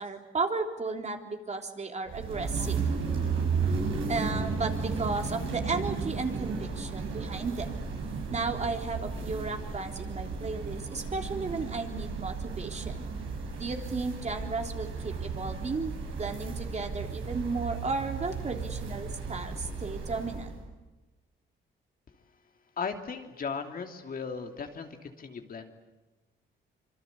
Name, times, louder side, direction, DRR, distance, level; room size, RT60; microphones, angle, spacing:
voice 1, 0.0-2.8 4.1-7.7 8.3-13.1 13.6-20.5, right 3 dB, 35° right, 3 dB, 3.5 m, -34 dB
sound 1, 2.1-20.6, right 5 dB, 75° right, 7.5 m, -34 dB
voice 2, 22.8-25.8, left 5 dB, 45° left, 4 dB, 2.9 m, -37 dB
26.0 x 24.5 x 8.4 m, 1.2 s
cardioid pair, 90°, 20 cm